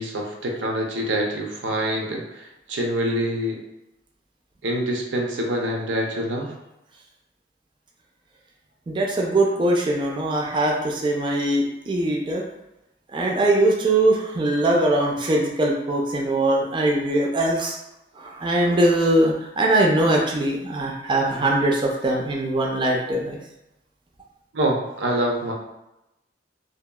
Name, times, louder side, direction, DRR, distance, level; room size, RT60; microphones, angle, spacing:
voice 1, 0.0-3.6 4.6-6.5 24.5-25.5, right 1 dB, 90° right, 0 dB, 0.5 m, -25 dB
voice 2, 8.9-12.4 13.1-17.8 18.2-23.4, right 1 dB, 25° right, -1 dB, 0.3 m, -21 dB
2.8 x 2.2 x 2.2 m, 0.91 s
head